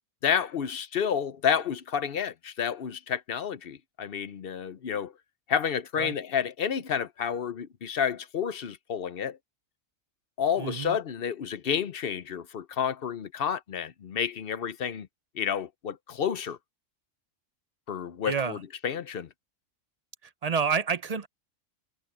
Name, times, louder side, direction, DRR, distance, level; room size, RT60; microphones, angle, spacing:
voice 1, 0.2-5.1 5.5-9.4 10.4-15.1 15.3-16.6 17.9-19.3, left 7 dB, 55° left, 0.8 m, -30 dB
voice 2, 10.6-11.0 18.3-18.6 20.4-21.3, right 6 dB, 45° right, 0.5 m, -28 dB
omnidirectional pair, 1.4 m